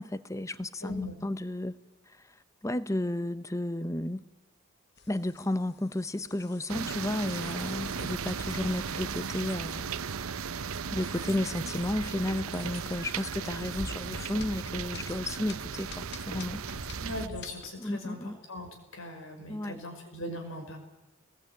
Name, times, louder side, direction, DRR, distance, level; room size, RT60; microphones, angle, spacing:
voice 1, 0.0-0.9 1.2-1.7 2.6-4.2 5.1-9.9 10.9-16.6 17.8-18.4 19.5-19.8, left 1 dB, 15° left, 0.8 m, -33 dB
voice 2, 0.8-1.1 17.0-20.8, left 1 dB, 75° left, 5.6 m, -39 dB
sound 1, 5.0-17.7, left 3 dB, 50° left, 2.1 m, -48 dB
sound 2, 6.7-17.3, right 6 dB, 80° right, 0.7 m, -37 dB
sound 3, 7.9-17.5, right 2 dB, 45° right, 0.9 m, -46 dB
22.5 x 20.5 x 9.1 m
head